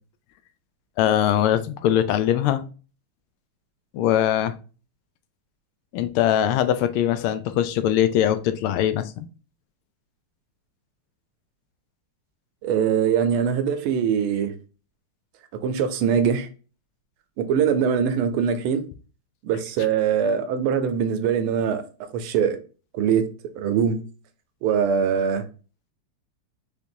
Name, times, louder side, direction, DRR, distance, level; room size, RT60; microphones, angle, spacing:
voice 1, 1.0-2.6 3.9-4.5 5.9-9.3, left 11 dB, 85° left, 11 dB, 1.5 m, -21 dB
voice 2, 12.6-14.5 15.6-16.5 17.4-18.8 19.4-21.8 22.1-22.6 22.9-23.3 23.6-24.0 24.6-25.5, right 7 dB, 85° right, 8 dB, 1.6 m, -22 dB
5.1 x 3.3 x 2.7 m, 0.36 s
omnidirectional pair, 2.3 m